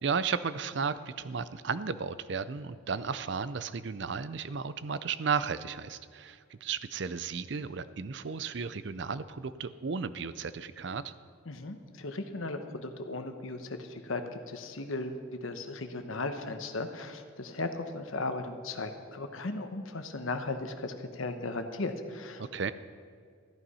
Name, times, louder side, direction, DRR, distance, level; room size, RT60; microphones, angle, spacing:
voice 1, 0.0-11.1 22.4-22.7, right 5 dB, 55° right, 14 dB, 0.5 m, -34 dB
voice 2, 11.5-22.4, left 2 dB, 80° left, 7 dB, 1.1 m, -36 dB
14.0 x 11.5 x 5.5 m, 2.2 s
head